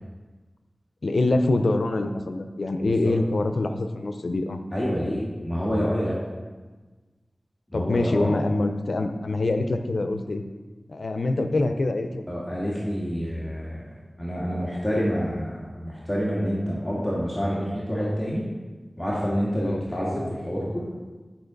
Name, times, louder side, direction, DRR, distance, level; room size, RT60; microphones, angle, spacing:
voice 1, 1.0-4.6 7.7-10.4 10.9-12.2 19.6-19.8, left 2 dB, 80° left, 7 dB, 0.6 m, -25 dB
voice 2, 2.8-3.1 4.7-6.1 7.7-8.3 12.3-13.8 14.2-18.4 19.0-20.9, equal, 20° left, -6 dB, 1.8 m, -27 dB
10.5 x 5.9 x 3.9 m, 1.3 s
wide cardioid pair, 60°, 0 cm